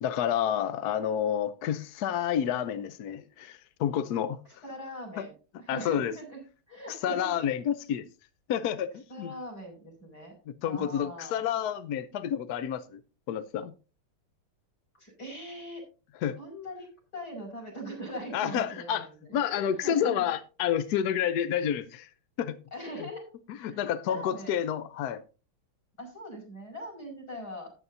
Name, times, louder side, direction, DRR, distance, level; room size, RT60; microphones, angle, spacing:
voice 1, 0.0-4.4 5.2-5.3 5.7-6.1 6.9-8.1 8.5-9.3 10.5-13.0 13.3-13.7 16.2-16.4 18.3-19.1 19.3-22.1 22.4-22.6 23.6-25.2, left 9 dB, 75° left, 0.9 m, -29 dB
voice 2, 4.6-5.3 5.6-6.4 6.7-7.4 9.1-10.3 10.6-11.4 14.9-15.8 16.4-16.9 17.1-20.3 22.7-23.3 23.6-24.5 26.0-27.7, equal, 45° left, 5.9 m, -41 dB
14.0 x 9.4 x 2.7 m
omnidirectional pair, 2.4 m